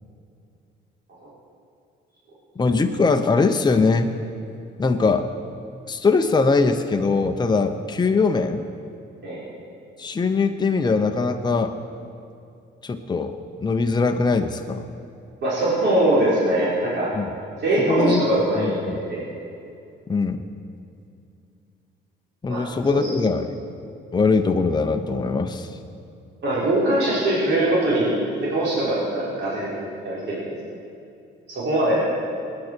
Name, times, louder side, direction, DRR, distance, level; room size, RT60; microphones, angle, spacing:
voice 1, 2.6-4.1 4.8-5.3 5.9-8.6 10.0-11.8 12.8-14.8 17.1-17.3 17.8-18.2 18.6-19.0 20.1-20.4 22.4-23.5 24.1-25.7, left 4 dB, 20° left, 5 dB, 0.8 m, -21 dB
voice 2, 15.4-17.1 17.6-19.2 22.5-23.1 26.4-30.4 31.5-32.1, right 1 dB, 60° right, -8 dB, 4.0 m, -22 dB
19.5 x 9.7 x 4.5 m, 2.5 s
cardioid pair, 90°, 20 cm